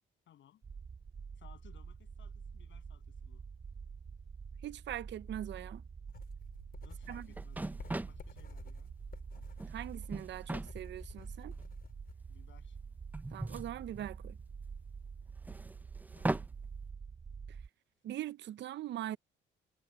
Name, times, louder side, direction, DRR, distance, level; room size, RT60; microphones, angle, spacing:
voice 1, 0.3-0.6 1.4-3.4 6.8-8.9 12.3-12.8 16.2-16.5, left 11 dB, 70° left, 7.4 m, -62 dB
sound 1, 0.6-17.7, right 5 dB, 40° right, 5.5 m, -47 dB
voice 2, 4.6-5.8 7.1-7.3 9.7-11.5 13.3-14.4 18.0-19.2, right 12 dB, 65° right, 0.6 m, -41 dB
sound 2, 6.1-12.1, left 7 dB, 50° left, 5.2 m, -54 dB
sound 3, 7.0-7.1 7.4-8.2 9.4-9.8 10.1-10.7 11.6-11.7 13.1-14.4 15.4-16.5, right 2 dB, 10° right, 0.6 m, -38 dB
cardioid pair, 90°, 20 cm